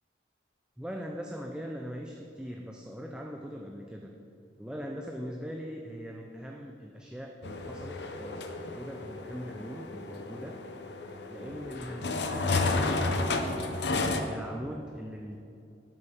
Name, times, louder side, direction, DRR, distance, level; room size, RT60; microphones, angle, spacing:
voice 1, 0.8-4.1 4.6-10.6 11.3-13.4 13.9-15.4, equal, 5° right, 1 dB, 0.4 m, -41 dB
sound 1, 7.4-14.2, left 3 dB, 60° left, 0.7 m, -32 dB
8.9 x 7.7 x 5.9 m, 2.6 s
head